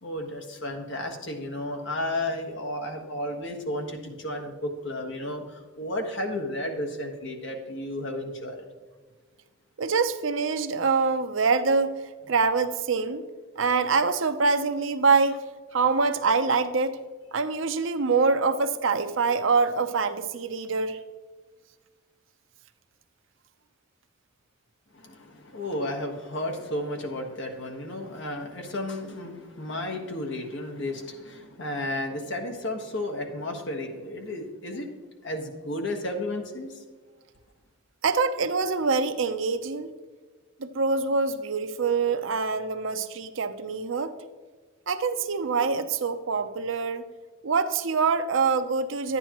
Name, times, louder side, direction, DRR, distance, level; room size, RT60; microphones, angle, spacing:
voice 1, 0.0-8.6 24.9-34.9 35.2-36.8, left 1 dB, 60° left, 3 dB, 1.3 m, -33 dB
voice 2, 9.8-12.0 12.3-13.2 13.6-15.4 15.7-17.0 17.3-21.0 38.0-39.9 40.6-44.1 44.9-47.0 47.4-49.2, right 4 dB, 65° right, 9 dB, 0.6 m, -25 dB
11.0 x 9.6 x 3.0 m, 1.4 s
head